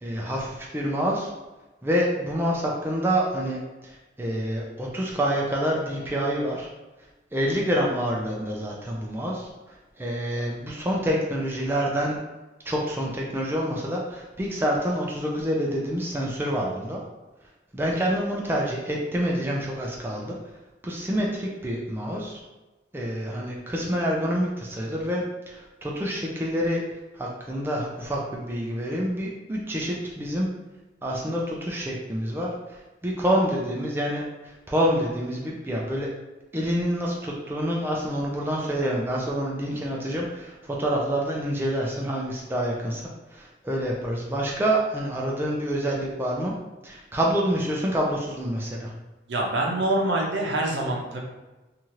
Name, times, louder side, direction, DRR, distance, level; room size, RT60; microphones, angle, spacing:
voice 1, 0.0-1.3 1.8-6.7 7.3-9.5 10.0-12.2 12.6-17.0 17.7-20.4 20.8-22.4 22.9-26.8 27.1-30.5 31.0-36.1 36.5-46.5 46.8-48.9, equal, 10° right, -3 dB, 0.3 m, -27 dB
voice 2, 49.3-51.2, right 1 dB, 80° right, -1 dB, 0.6 m, -25 dB
2.8 x 2.4 x 2.9 m, 1.1 s
head